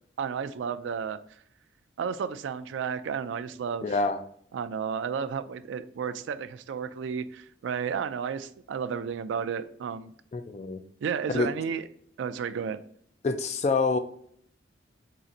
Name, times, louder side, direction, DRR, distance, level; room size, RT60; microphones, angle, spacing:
voice 1, 0.2-1.2 2.0-4.0 4.5-10.1 11.0-11.8 12.2-12.8, right 6 dB, 80° right, 13 dB, 0.3 m, -32 dB
voice 2, 3.8-4.2 10.3-10.8 11.3-11.5 13.2-14.0, left 3 dB, 35° left, 8 dB, 0.3 m, -26 dB
3.8 x 2.5 x 4.1 m, 0.64 s
head